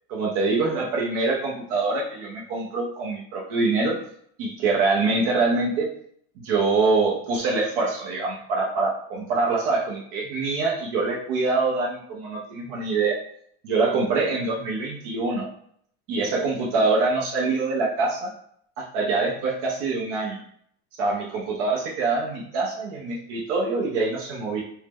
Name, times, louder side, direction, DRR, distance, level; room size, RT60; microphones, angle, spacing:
voice 1, 0.1-4.0 4.4-5.9 6.4-13.2 13.6-15.5 16.1-18.3 18.8-20.4 20.9-24.6, right 3 dB, 75° right, -3 dB, 0.7 m, -24 dB
2.7 x 2.2 x 3.4 m, 0.67 s
supercardioid pair, 105°, 34 cm